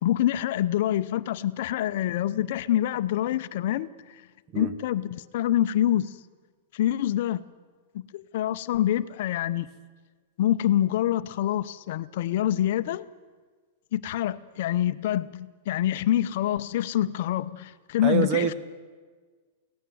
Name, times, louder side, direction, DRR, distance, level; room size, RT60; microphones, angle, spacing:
voice 1, 0.0-4.3 4.5-6.2 6.7-7.4 8.1-9.7 10.4-13.1 13.9-18.5, left 12 dB, 55° left, 13 dB, 0.7 m, -26 dB
voice 2, 18.0-18.5, right 8 dB, 30° right, 11 dB, 1.3 m, -25 dB
24.0 x 17.0 x 7.8 m, 1.5 s
supercardioid pair, 165°, 0 cm